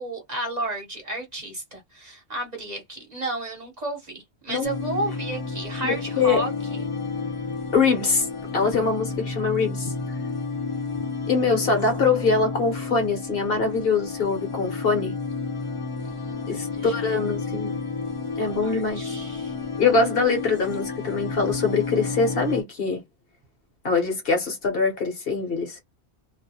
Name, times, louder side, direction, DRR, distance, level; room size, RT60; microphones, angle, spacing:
voice 1, 0.0-6.9 16.0-17.1 18.4-19.6, right 2 dB, 40° right, 0.9 m, -33 dB
sound 1, 4.6-22.6, left 4 dB, 35° left, 0.6 m, -31 dB
voice 2, 5.8-6.4 7.7-8.3 8.5-9.9 11.3-15.1 16.5-17.7 18.4-19.1 19.8-23.0 23.8-25.8, left 4 dB, 60° left, 1.0 m, -23 dB
2.5 x 2.1 x 2.7 m
omnidirectional pair, 1.2 m